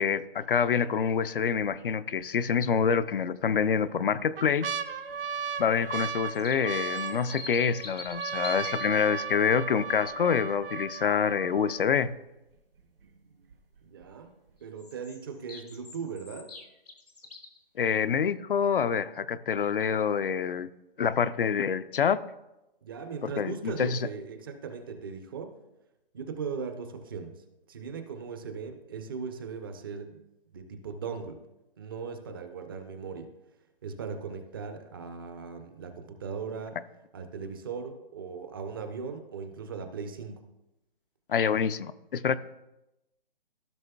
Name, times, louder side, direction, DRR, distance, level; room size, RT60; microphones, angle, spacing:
voice 1, 0.0-4.7 5.6-12.1 17.8-20.7 21.0-22.2 23.2-24.0 41.3-42.4, left 7 dB, 65° left, 13 dB, 0.5 m, -26 dB
sound 1, 1.2-1.6 2.1-2.2 3.1-3.6 4.1-12.1 12.8-12.9 13.0-13.5 14.0-14.1, right 6 dB, 70° right, 0.8 m, -36 dB
sound 2, 6.1-8.9 14.8-17.6, left 3 dB, 90° left, 1.9 m, -45 dB
voice 2, 13.8-14.3 14.6-16.5 22.8-25.6 26.1-30.2 30.5-31.4 31.8-33.3 33.8-36.8 37.1-40.5, right 5 dB, 25° right, 7 dB, 0.5 m, -38 dB
15.0 x 6.2 x 2.3 m, 0.94 s
figure-of-eight pair, 145°, 30 cm